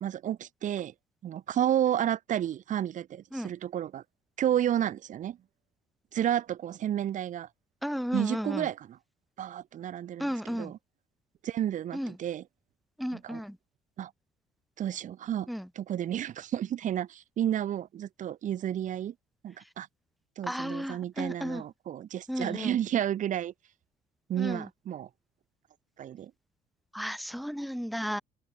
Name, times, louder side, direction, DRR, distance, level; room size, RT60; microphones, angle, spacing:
voice 1, 0.0-0.9 1.2-4.0 4.4-5.4 6.1-7.5 8.1-9.0 9.4-10.8 11.4-12.4 13.1-13.4 14.0-14.1 14.8-15.5 15.8-19.1 19.4-19.9 20.4-23.5 24.3-25.1 26.0-26.3, right 10 dB, 50° right, 0.8 m, -31 dB
voice 2, 7.8-8.7 10.2-10.7 11.9-12.2 13.0-13.6 15.5-15.7 20.5-21.6 22.3-22.8 24.4-24.7 26.9-28.2, equal, ahead, 2.0 m, -34 dB
open air
cardioid pair, 110°, 17 cm